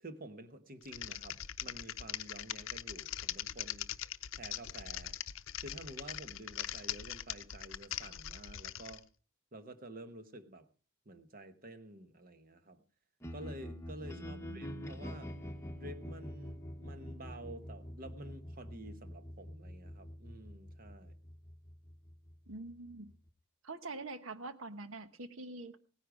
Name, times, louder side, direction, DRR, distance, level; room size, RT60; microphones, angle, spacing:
voice 1, 0.0-3.9 4.3-5.2 5.6-9.0 9.5-10.7 11.0-12.8 13.3-15.3 15.7-21.1, right 1 dB, 45° right, 1.2 m, -50 dB
Typing, 0.8-9.0, left 11 dB, 65° left, 0.7 m, -41 dB
sound 1, 13.2-23.3, equal, 15° left, 1.0 m, -46 dB
voice 2, 14.1-14.9 22.5-23.1 23.6-25.8, right 2 dB, 70° right, 1.1 m, -45 dB
17.0 x 10.0 x 4.9 m
head